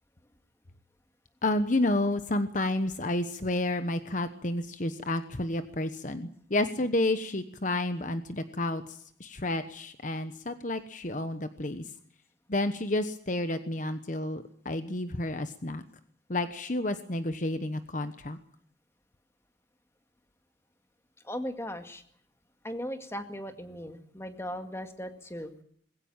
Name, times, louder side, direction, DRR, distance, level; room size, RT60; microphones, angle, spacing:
voice 1, 1.4-11.9 12.5-15.8 16.3-18.4, left 1 dB, 40° left, 10 dB, 1.1 m, -30 dB
voice 2, 21.2-22.0 22.6-25.6, equal, 15° left, 7 dB, 2.0 m, -38 dB
21.0 x 17.0 x 8.9 m, 0.63 s
head